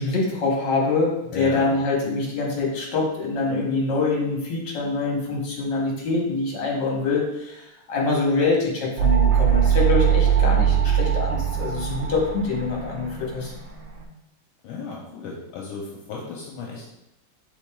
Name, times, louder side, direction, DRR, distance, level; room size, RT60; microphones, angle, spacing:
voice 1, 0.0-13.5, left 3 dB, 60° left, -2 dB, 1.7 m, -25 dB
voice 2, 1.3-1.8 14.6-16.9, left 5 dB, 80° left, -3 dB, 1.4 m, -34 dB
sound 1, 9.0-14.0, right 9 dB, 70° right, 1.2 m, -21 dB
6.2 x 3.3 x 2.2 m, 0.88 s
omnidirectional pair, 2.3 m